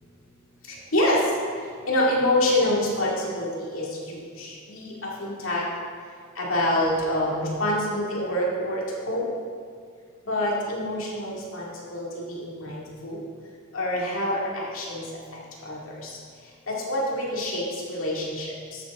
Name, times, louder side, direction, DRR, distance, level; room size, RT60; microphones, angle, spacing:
voice 1, 1.9-5.6 6.4-9.3 10.3-13.2 13.7-15.0 15.7-15.8 16.7-17.6 17.9-18.5, left 1 dB, 70° left, -4 dB, 2.3 m, -26 dB
13.5 x 7.6 x 3.7 m, 2.1 s
head